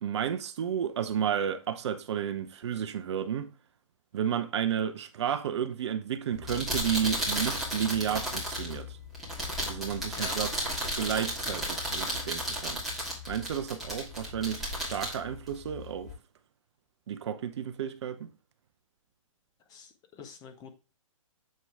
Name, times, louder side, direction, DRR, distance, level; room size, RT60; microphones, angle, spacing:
voice 1, 0.0-3.5 4.1-9.0 9.7-10.5 11.0-12.8 13.3-16.1 17.1-18.3, right 9 dB, 50° right, 0.7 m, -32 dB
sound 1, 6.3-16.1, equal, ahead, 3.1 m, -34 dB
voice 2, 19.7-20.7, left 6 dB, 20° left, 1.2 m, -45 dB
7.6 x 4.6 x 3.5 m
figure-of-eight pair, 125°, 18 cm